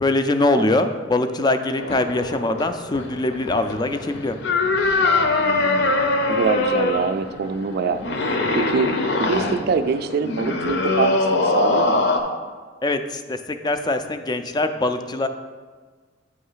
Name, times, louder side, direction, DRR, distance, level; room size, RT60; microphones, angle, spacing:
voice 1, 0.0-4.4 12.8-15.3, left 2 dB, 20° left, 8 dB, 0.3 m, -22 dB
sound 1, 1.8-12.2, left 2 dB, 65° left, 0.6 m, -23 dB
voice 2, 5.4-6.0 6.3-8.0 8.5-8.9 9.2-12.1, right 5 dB, 55° right, 10 dB, 0.4 m, -24 dB
8.6 x 3.1 x 5.6 m, 1.5 s
head